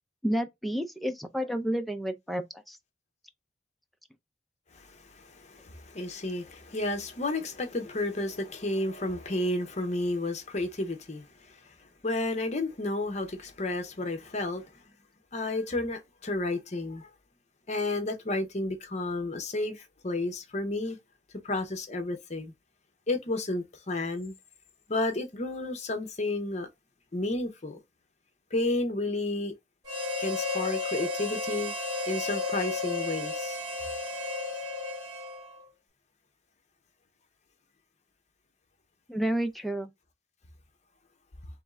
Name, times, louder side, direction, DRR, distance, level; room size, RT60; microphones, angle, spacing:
voice 1, 0.2-2.4 2.7-2.8 39.1-39.9, right 1 dB, ahead, 0.4 m, -30 dB
voice 2, 4.7-14.8 15.3-17.1 17.7-21.0 21.4-22.5 23.1-24.3 24.9-26.7 27.1-27.8 28.5-29.5 30.2-31.7 32.1-33.6, left 2 dB, 40° left, 0.8 m, -32 dB
Harmonica, 29.8-35.6, left 3 dB, 20° right, 2.4 m, -33 dB
3.5 x 3.1 x 3.6 m
head